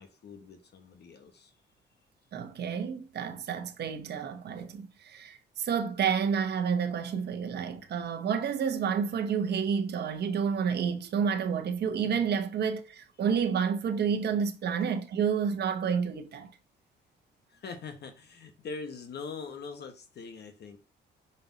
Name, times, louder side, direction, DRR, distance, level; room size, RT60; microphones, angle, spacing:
voice 1, 0.0-1.5 17.5-20.8, left 5 dB, 55° left, 1.1 m, -43 dB
voice 2, 2.3-16.5, right 7 dB, 55° right, 0.9 m, -30 dB
5.4 x 4.3 x 4.0 m
cardioid pair, 90°, 20 cm